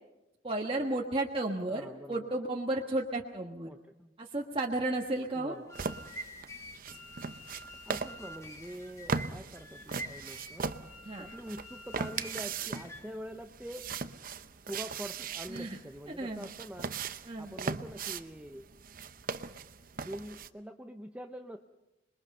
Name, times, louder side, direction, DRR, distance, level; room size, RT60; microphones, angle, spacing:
voice 1, 0.4-3.7 4.2-5.6 11.0-11.3 15.5-15.8 16.2-16.4 17.2-17.5, right 2 dB, 30° right, 0 dB, 1.4 m, -33 dB
voice 2, 1.7-2.3 3.7-4.1 5.4-5.7 7.9-10.7 11.2-13.9 14.7-16.9 17.4-18.7 20.1-21.6, equal, 5° right, 5 dB, 0.7 m, -44 dB
sound 1, 5.5-13.2, equal, 15° left, 1.8 m, -48 dB
sound 2, 5.7-20.5, right 5 dB, 50° right, 0.8 m, -39 dB
27.0 x 22.0 x 5.5 m, 0.98 s
head